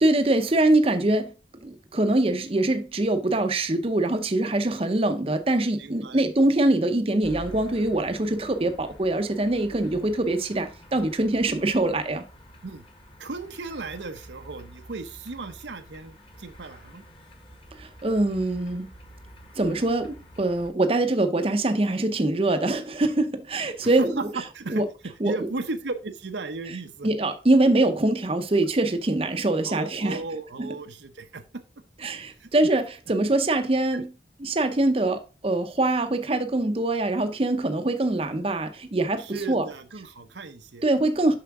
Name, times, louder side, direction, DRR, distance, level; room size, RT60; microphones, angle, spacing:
voice 1, 0.0-1.3 1.6-12.2 17.8-18.9 19.6-24.3 24.7-24.8 25.2-25.3 27.0-30.2 30.6-30.7 32.0-34.1 34.4-39.6 40.8-41.3, right 2 dB, 30° right, 0.7 m, -23 dB
voice 2, 5.8-6.2 9.9-10.0 12.6-12.9 13.2-17.0 23.8-24.8 25.2-27.1 29.6-31.6 32.4-32.5 33.9-34.0 39.2-40.9, right 3 dB, 75° right, 0.8 m, -35 dB
sound 1, 7.2-20.7, equal, 30° left, 1.3 m, -48 dB
6.9 x 5.7 x 3.5 m
head